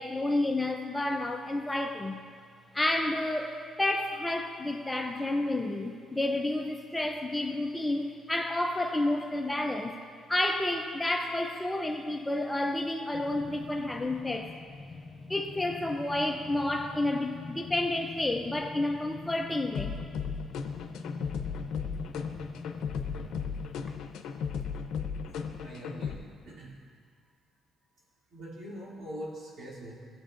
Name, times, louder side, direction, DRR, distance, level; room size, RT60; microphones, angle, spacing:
voice 1, 0.0-2.2 2.7-10.0 10.3-14.5 15.3-20.0, left 1 dB, 10° left, 3 dB, 0.4 m, -30 dB
sound 1, 13.1-23.5, left 4 dB, 35° left, 0.9 m, -44 dB
sound 2, 19.7-26.1, left 6 dB, 85° left, 0.6 m, -35 dB
voice 2, 25.3-26.8 28.3-30.1, right 1 dB, 50° right, -5 dB, 2.5 m, -43 dB
17.0 x 7.8 x 2.5 m, 2.1 s
cardioid pair, 140°, 0 cm